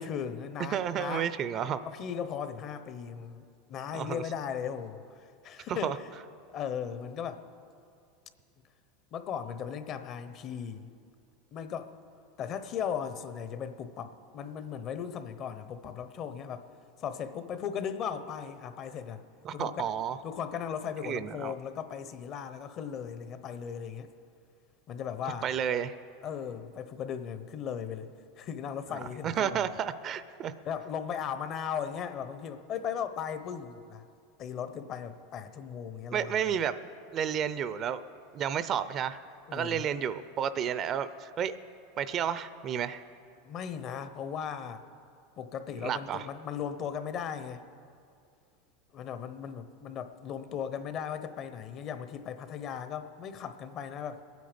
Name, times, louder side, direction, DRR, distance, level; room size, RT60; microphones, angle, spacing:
voice 1, 0.0-1.3 1.8-3.4 3.7-6.1 6.5-7.5 9.1-10.9 11.5-11.9 12.4-16.7 17.0-19.2 19.5-19.9 20.2-24.1 24.9-25.5 26.2-28.1 28.4-29.6 30.6-34.1 34.4-36.4 39.5-39.9 43.4-44.8 45.4-47.6 48.9-54.2, left 8 dB, 45° left, 11 dB, 0.9 m, -37 dB
voice 2, 0.7-1.8 3.9-4.2 5.8-5.9 19.4-20.2 21.0-21.5 25.4-25.9 28.9-30.5 36.1-36.8 37.1-38.0 38.3-39.2 39.5-41.6 42.0-43.0 45.8-46.3, right 8 dB, 40° right, 14 dB, 0.5 m, -31 dB
21.5 x 9.4 x 5.2 m, 2.4 s
supercardioid pair, 110°, 0 cm